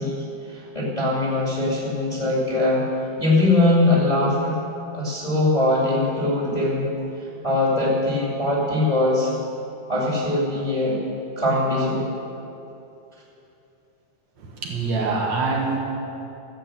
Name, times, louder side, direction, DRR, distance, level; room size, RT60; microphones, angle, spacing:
voice 1, 0.0-4.6 4.9-6.9 7.4-9.3 9.9-11.0 11.4-12.1, left 2 dB, 15° left, -5 dB, 1.9 m, -21 dB
voice 2, 14.4-15.8, right 3 dB, 65° right, -1 dB, 2.5 m, -25 dB
14.5 x 7.6 x 7.6 m, 2.8 s
omnidirectional pair, 3.6 m